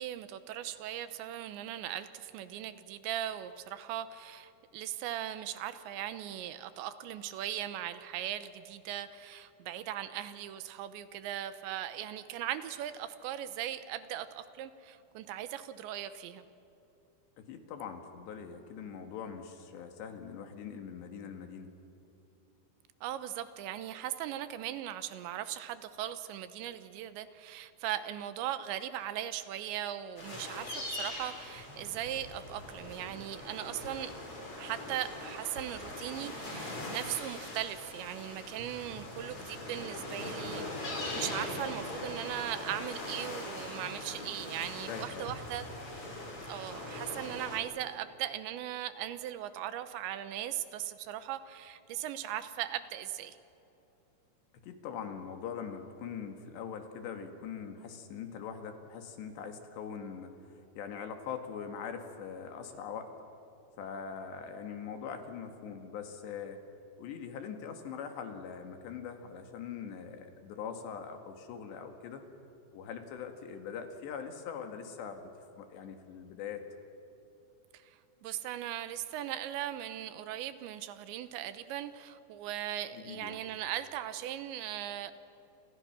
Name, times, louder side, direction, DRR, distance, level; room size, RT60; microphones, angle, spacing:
voice 1, 0.0-16.4 23.0-34.1 34.6-45.7 45.9-46.0 46.5-53.4 77.7-85.1, right 12 dB, 85° right, 12 dB, 3.2 m, -39 dB
voice 2, 17.4-21.7 44.9-45.4 54.5-60.4 60.7-63.1 63.8-66.6 67.0-72.3 72.7-75.2 75.6-76.6 82.9-83.4, left 7 dB, 70° left, 6 dB, 3.9 m, -42 dB
sound 1, 30.2-47.6, left 1 dB, 30° left, 5.4 m, -41 dB
29.0 x 27.0 x 6.0 m, 3.0 s
omnidirectional pair, 5.3 m